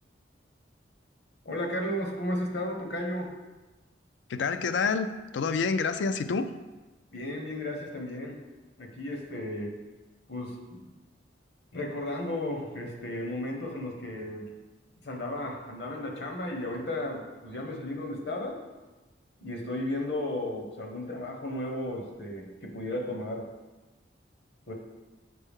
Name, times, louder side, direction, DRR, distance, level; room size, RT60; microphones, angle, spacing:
voice 1, 1.4-3.3 7.1-8.4 8.8-9.7 10.3-10.9 11.7-14.5 15.0-18.6 19.4-23.5 24.7-24.8, left 1 dB, 65° left, 2 dB, 1.0 m, -34 dB
voice 2, 4.3-6.5, left 5 dB, 80° left, 10 dB, 0.4 m, -28 dB
6.6 x 4.5 x 3.6 m, 1.2 s
head